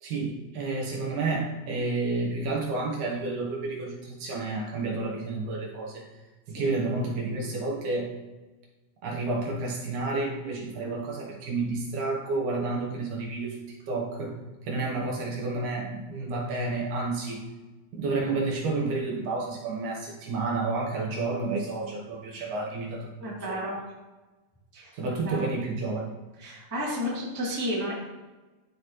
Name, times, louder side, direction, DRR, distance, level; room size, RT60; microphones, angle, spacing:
voice 1, 0.0-6.0 6.5-8.1 9.0-13.6 13.9-14.3 14.7-17.4 17.9-23.6 24.9-26.1, right 3 dB, 65° right, -2 dB, 2.4 m, -30 dB
voice 2, 23.2-23.7 24.7-25.4 26.4-27.9, equal, 10° right, -6 dB, 1.1 m, -32 dB
12.5 x 4.1 x 3.1 m, 1.2 s
omnidirectional pair, 4.0 m